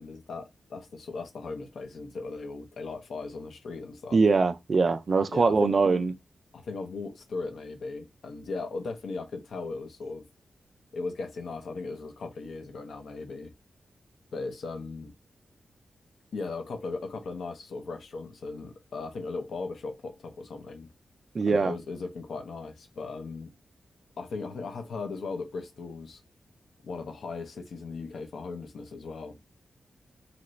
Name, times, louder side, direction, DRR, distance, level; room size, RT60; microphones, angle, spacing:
voice 1, 0.0-4.2 5.3-5.8 6.5-10.3 10.9-13.5 14.3-15.1 16.3-20.9 21.5-23.5 24.2-26.2 26.8-29.4, left 3 dB, 85° left, 0.7 m, -37 dB
voice 2, 4.1-6.1 21.3-21.7, right 4 dB, 40° right, 0.3 m, -22 dB
2.8 x 2.5 x 3.1 m
wide cardioid pair, 175°, 0 cm